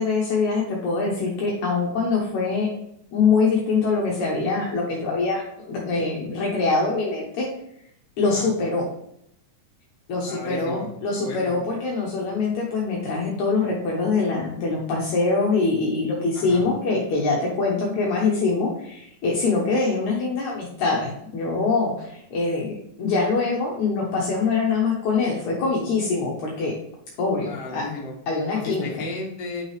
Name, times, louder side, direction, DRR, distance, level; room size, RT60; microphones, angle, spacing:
voice 1, 0.0-2.7 3.1-7.5 8.2-8.9 10.1-22.7 23.0-26.7 27.2-27.8 28.3-28.9, left 4 dB, 70° left, -3 dB, 2.4 m, -24 dB
voice 2, 10.3-11.5 16.3-16.7 27.5-28.1 28.5-29.6, left 2 dB, 50° left, -2 dB, 2.6 m, -35 dB
9.0 x 6.0 x 3.3 m, 0.74 s
omnidirectional pair, 3.6 m